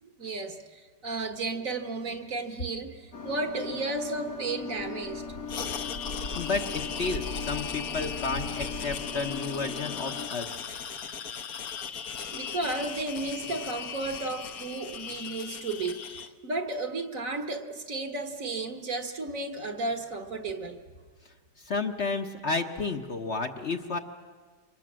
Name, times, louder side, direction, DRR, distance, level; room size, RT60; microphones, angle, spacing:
voice 1, 0.0-5.2 12.3-20.8, right 3 dB, 55° right, 6 dB, 1.9 m, -33 dB
sound 1, 3.1-10.3, left 4 dB, 90° left, 2.7 m, -38 dB
sound 2, 5.5-16.3, left 7 dB, 65° left, 1.5 m, -38 dB
voice 2, 6.3-10.6 21.6-24.0, left 4 dB, 45° left, 4 dB, 1.2 m, -32 dB
27.5 x 24.0 x 7.6 m, 1.5 s
omnidirectional pair, 1.8 m